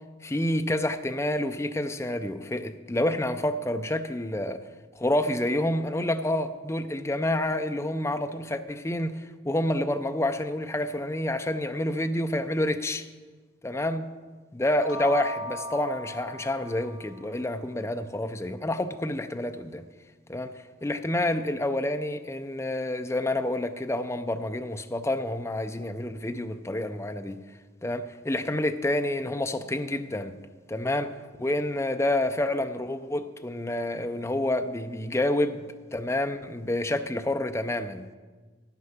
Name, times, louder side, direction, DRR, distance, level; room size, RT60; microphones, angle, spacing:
voice 1, 0.2-4.6 4.9-13.1 13.6-14.0 14.5-19.9 20.3-27.4 27.8-30.3 30.7-31.1 31.4-35.6 35.9-38.1, left 1 dB, 15° left, 8 dB, 0.4 m, -28 dB
sound 1, 14.7-17.4, left 1 dB, 80° left, 1.3 m, -38 dB
10.5 x 9.6 x 5.7 m, 1.4 s
head